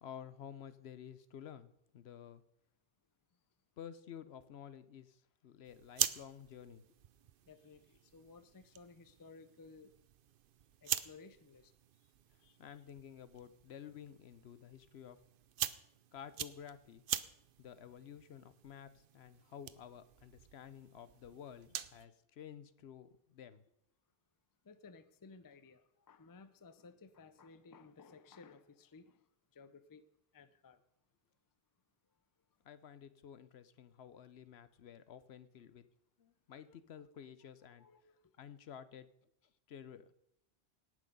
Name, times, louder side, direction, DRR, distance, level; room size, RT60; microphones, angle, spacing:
voice 1, 0.0-2.4 3.8-6.8 12.6-15.2 16.1-17.0 17.6-23.6 32.6-35.8 36.2-37.9 38.4-39.1 39.7-40.1, left 8 dB, 70° left, 14 dB, 0.9 m, -52 dB
sound 1, 5.6-22.1, right 10 dB, 60° right, 0.7 m, -44 dB
voice 2, 7.5-9.9 10.8-11.7 12.4-12.6 21.9-22.1 24.6-30.0 30.3-30.8 37.6-38.3, left 4 dB, 25° left, 13 dB, 0.4 m, -58 dB
18.0 x 6.3 x 5.3 m, 0.78 s
omnidirectional pair, 1.1 m